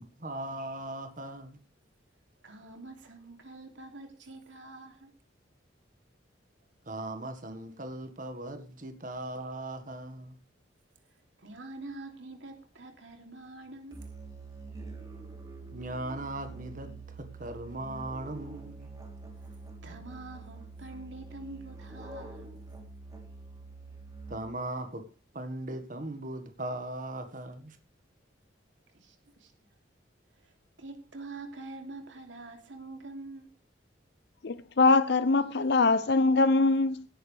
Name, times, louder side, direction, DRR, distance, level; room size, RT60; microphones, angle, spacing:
voice 1, 0.0-1.6 6.9-10.3 15.7-18.9 24.3-25.0 25.3-27.8, right 1 dB, 45° right, 1.6 m, -38 dB
voice 2, 2.4-5.1 11.4-14.1 19.8-22.5 28.9-29.5 30.8-33.5, right 2 dB, 80° right, 2.9 m, -45 dB
Musical instrument, 13.9-24.7, right 3 dB, 20° right, 3.4 m, -45 dB
voice 3, 34.4-37.1, left 3 dB, 60° left, 0.6 m, -23 dB
17.0 x 10.0 x 3.4 m
head